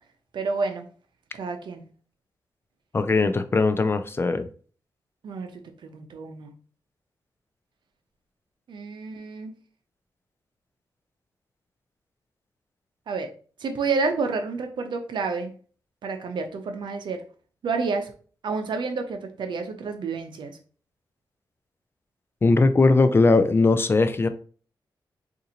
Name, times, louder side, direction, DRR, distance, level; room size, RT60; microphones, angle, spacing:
voice 1, 0.3-0.9 1.3-1.8 5.2-5.5 5.8-6.5 8.7-9.5 13.1-13.3 13.6-15.5 16.0-17.2 17.6-18.1 18.4-20.5, right 4 dB, 75° right, 0.6 m, -29 dB
voice 2, 2.9-4.4 22.4-24.3, left 3 dB, 30° left, 0.3 m, -19 dB
3.8 x 2.6 x 2.8 m
cardioid pair, 90°, 8 cm